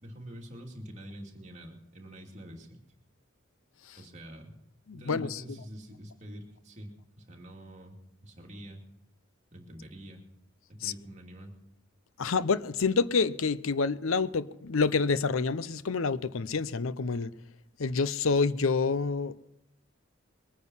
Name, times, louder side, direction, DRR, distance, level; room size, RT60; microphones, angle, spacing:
voice 1, 0.0-2.8 4.0-4.5 4.9-8.8 9.5-10.2 10.7-11.5, equal, 35° right, 2.8 m, -46 dB
voice 2, 4.9-5.6 10.8-10.9 12.2-17.3 17.8-19.5, left 4 dB, 75° left, 0.6 m, -28 dB
22.0 x 9.5 x 5.6 m
head